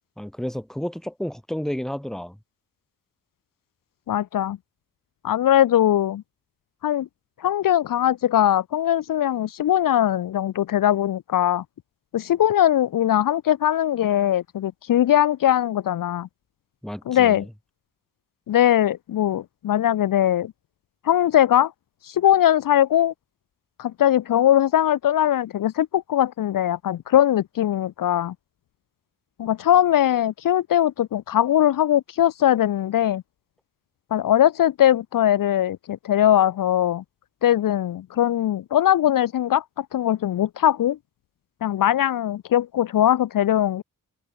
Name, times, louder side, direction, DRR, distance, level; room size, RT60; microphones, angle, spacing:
voice 1, 0.2-2.4 16.8-17.5, equal, ahead, 1.4 m, -31 dB
voice 2, 4.1-4.6 5.2-6.2 6.8-7.1 7.4-11.6 12.1-16.3 17.1-17.4 18.5-20.5 21.0-21.7 22.1-23.1 23.8-28.3 29.4-33.2 34.1-37.0 37.4-41.0 41.6-43.8, left 11 dB, 70° left, 0.6 m, -20 dB
wide cardioid pair, 170°, 35 cm